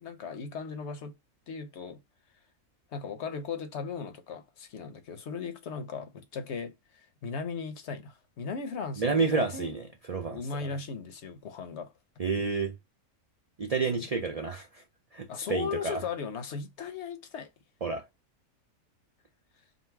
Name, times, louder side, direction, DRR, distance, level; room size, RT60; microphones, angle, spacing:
voice 1, 0.0-1.2 1.5-2.0 2.9-9.8 10.3-11.9 13.9-14.1 15.3-17.5, left 5 dB, 55° left, 1.0 m, -37 dB
voice 2, 9.0-10.7 12.2-12.8 13.6-14.8 15.1-16.0 17.8-18.1, right 4 dB, 60° right, 0.3 m, -30 dB
3.9 x 2.2 x 4.5 m
omnidirectional pair, 1.5 m